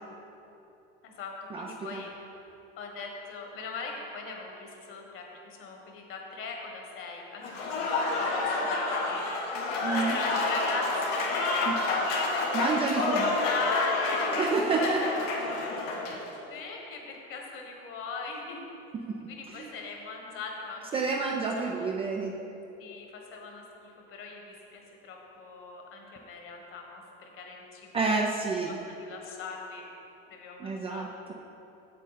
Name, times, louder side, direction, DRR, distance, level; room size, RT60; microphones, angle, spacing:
voice 1, 1.0-2.1 2.8-7.9 8.1-9.3 10.0-11.4 11.7-14.4 14.7-15.3 16.4-18.7 19.3-21.9 22.8-28.3 28.7-29.9 30.3-31.1, left 4 dB, 45° left, 1 dB, 1.5 m, -39 dB
Applause / Crowd, 7.4-16.3, left 3 dB, 85° left, 1.7 m, -29 dB
voice 2, 9.8-10.2 11.7-11.8 12.5-13.3 14.4-15.0 19.6-19.7 20.9-22.4 27.9-28.8 30.6-31.3, right 4 dB, 20° right, 1 dB, 0.4 m, -29 dB
7.6 x 7.1 x 4.2 m, 3.0 s
supercardioid pair, 135°, 30 cm